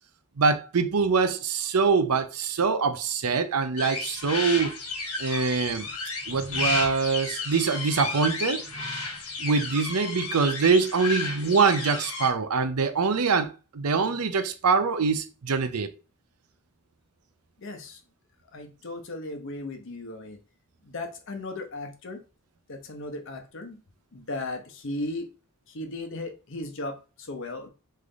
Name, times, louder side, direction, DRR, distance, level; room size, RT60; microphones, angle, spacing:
voice 1, 0.4-4.7 5.2-5.9 6.3-8.6 9.4-15.9, right 5 dB, 85° right, 0.6 m, -24 dB
sound 1, 3.8-12.3, left 3 dB, 80° left, 1.4 m, -32 dB
voice 2, 17.6-18.0 18.5-20.4 20.8-22.2 22.7-23.8 24.1-25.3 25.7-27.7, left 2 dB, 60° left, 0.8 m, -36 dB
3.7 x 3.3 x 3.9 m
head